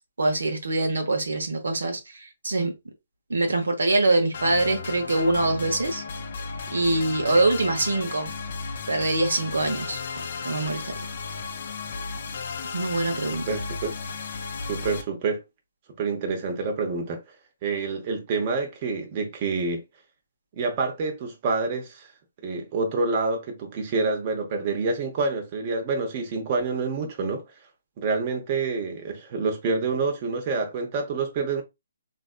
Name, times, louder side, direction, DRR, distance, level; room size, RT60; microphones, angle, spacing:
voice 1, 0.2-2.7 3.3-6.0 6.7-8.3 8.9-10.0 10.4-10.9 12.7-13.5, right 2 dB, 85° right, 0.8 m, -24 dB
sound 1, 4.3-15.0, left 5 dB, 55° left, 0.5 m, -34 dB
voice 2, 13.3-13.9 14.7-15.4 16.0-17.2 17.6-19.8 20.5-22.1 22.4-27.4 28.0-31.6, right 4 dB, 35° right, 0.8 m, -27 dB
3.3 x 2.5 x 2.4 m
hypercardioid pair, 145°, 0 cm